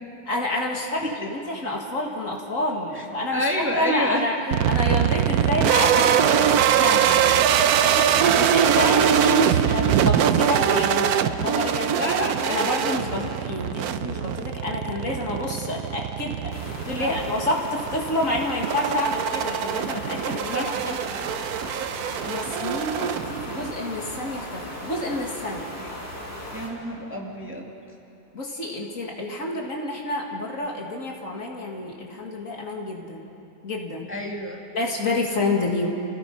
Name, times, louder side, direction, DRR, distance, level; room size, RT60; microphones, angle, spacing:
voice 1, 0.3-4.3 4.7-7.4 8.2-12.1 12.5-20.7 21.7-21.9 22.2-25.7 28.3-33.2 33.6-34.1 34.7-35.9, left 1 dB, 55° left, -1 dB, 2.4 m, -28 dB
voice 2, 3.3-4.2 7.2-7.4 7.7-8.2 11.9-12.7 17.0-17.2 20.5-21.0 26.5-27.7 34.1-34.6, left 1 dB, 5° right, -1 dB, 2.0 m, -29 dB
sound 1, 4.5-23.7, right 9 dB, 70° right, 1.2 m, -22 dB
sound 2, 16.5-26.7, left 1 dB, 35° left, 3.5 m, -37 dB
29.5 x 17.0 x 5.4 m, 2.8 s
omnidirectional pair, 1.7 m